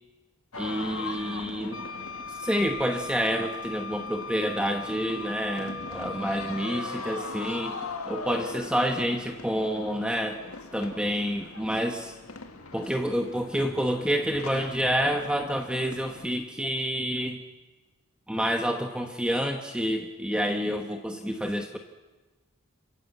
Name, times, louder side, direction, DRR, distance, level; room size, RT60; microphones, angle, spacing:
sound 1, 0.5-16.3, left 3 dB, 85° left, 1.9 m, -41 dB
voice 1, 0.6-1.8 2.3-7.8 8.1-10.4 10.7-12.1 12.7-17.4 18.3-21.8, equal, 5° right, 4 dB, 1.0 m, -28 dB
Wind instrument woodwind instrument, 1.7-6.9, left 4 dB, 60° left, 1.3 m, -39 dB
27.0 x 14.5 x 8.1 m, 1.2 s
head